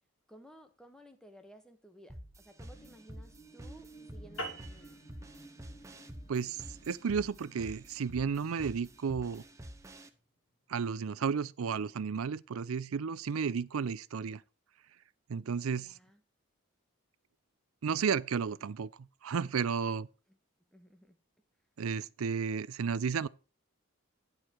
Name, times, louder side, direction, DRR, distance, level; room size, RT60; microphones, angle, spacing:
voice 1, 0.3-5.0 15.7-16.2 20.3-20.4 20.7-21.2, equal, 5° left, 1.1 m, -57 dB
sound 1, 2.1-10.1, equal, 15° right, 0.8 m, -49 dB
sound 2, 2.5-10.3 10.8-10.9, right 2 dB, 30° left, 1.1 m, -58 dB
sound 3, 4.4-9.1, right 1 dB, 75° left, 2.6 m, -47 dB
voice 2, 6.3-9.4 10.7-14.4 15.3-15.9 17.8-18.9 19.2-20.1 21.8-23.3, right 6 dB, 80° right, 0.5 m, -33 dB
10.5 x 4.8 x 5.9 m
head